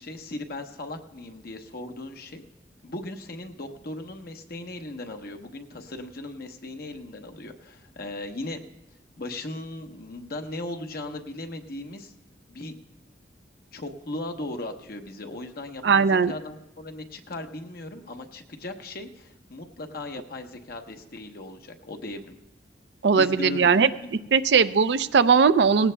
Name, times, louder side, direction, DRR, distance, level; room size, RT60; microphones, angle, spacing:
voice 1, 0.0-2.4 2.8-8.6 9.2-12.1 12.5-12.7 13.7-22.4 23.1-24.6, left 2 dB, 60° left, 5 dB, 1.0 m, -37 dB
voice 2, 15.8-16.3 23.0-25.9, right 5 dB, 70° right, 12 dB, 0.5 m, -19 dB
19.0 x 16.0 x 2.2 m, 0.95 s
head